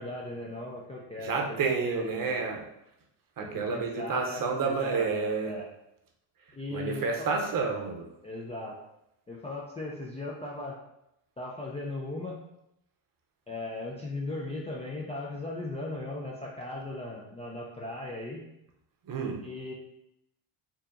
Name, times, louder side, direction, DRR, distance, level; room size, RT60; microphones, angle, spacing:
voice 1, 0.0-2.5 3.4-5.7 6.5-7.3 8.2-8.8 9.3-10.8 11.4-12.4 13.5-18.4 19.4-19.7, left 2 dB, 15° left, -4 dB, 0.4 m, -38 dB
voice 2, 1.2-2.6 3.4-5.6 6.7-8.1 19.1-19.4, right 4 dB, 40° right, 1 dB, 0.7 m, -30 dB
4.4 x 2.8 x 2.5 m, 0.83 s
cardioid pair, 110°, 50 cm